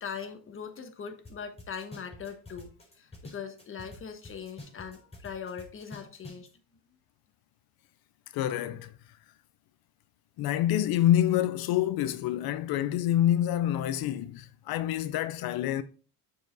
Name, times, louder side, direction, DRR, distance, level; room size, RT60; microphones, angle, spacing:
voice 1, 0.0-6.5, left 6 dB, 35° left, 1.3 m, -41 dB
sound 1, 1.2-1.3 1.6-4.0 4.2-6.5, left 2 dB, 15° left, 3.8 m, -46 dB
voice 2, 8.3-8.9 10.4-15.8, left 12 dB, 70° left, 0.6 m, -27 dB
6.8 x 5.0 x 3.9 m
cardioid pair, 105°, 38 cm